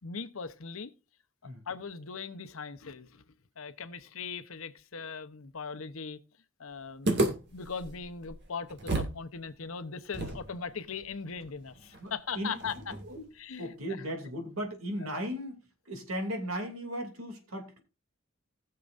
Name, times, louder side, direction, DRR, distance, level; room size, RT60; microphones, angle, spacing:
voice 1, 0.0-0.9 1.4-3.2 3.6-6.2 6.6-7.1 7.5-12.9 13.4-13.7 15.0-15.2, left 5 dB, 75° left, 0.9 m, -39 dB
sound 1, 7.0-9.2 9.5-9.6 10.1-13.3, right 2 dB, 55° right, 2.2 m, -34 dB
voice 2, 12.0-12.6 13.0-13.2 13.6-15.6 15.9-17.8, equal, 90° right, 2.7 m, -36 dB
19.5 x 6.7 x 2.6 m
head